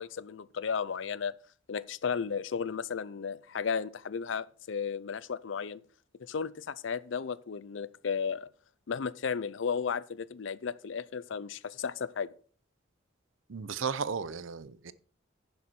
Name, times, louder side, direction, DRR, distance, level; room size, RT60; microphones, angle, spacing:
voice 1, 0.0-1.3 1.7-5.8 6.3-8.5 8.9-12.3, left 6 dB, 70° left, 0.5 m, -34 dB
voice 2, 13.5-14.9, right 6 dB, 85° right, 0.6 m, -34 dB
11.0 x 7.0 x 4.4 m
head